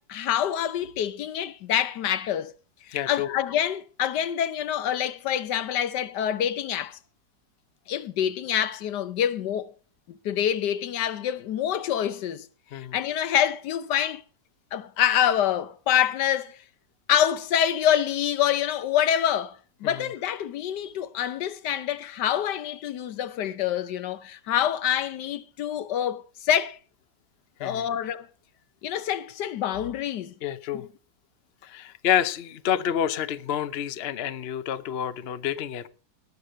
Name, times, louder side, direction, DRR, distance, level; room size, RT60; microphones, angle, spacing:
voice 1, 0.0-2.5 2.9-7.0 7.9-9.7 10.2-12.5 12.7-14.2 14.7-16.6 17.1-26.8 27.6-28.3 28.8-30.3 30.7-30.8, left 10 dB, 70° left, 1.3 m, -26 dB
voice 2, 2.9-3.3 12.7-13.0 19.8-20.1 27.6-27.9 30.4-30.9 31.6-35.9, left 10 dB, 50° left, 0.7 m, -28 dB
19.0 x 6.6 x 5.5 m
omnidirectional pair, 1.9 m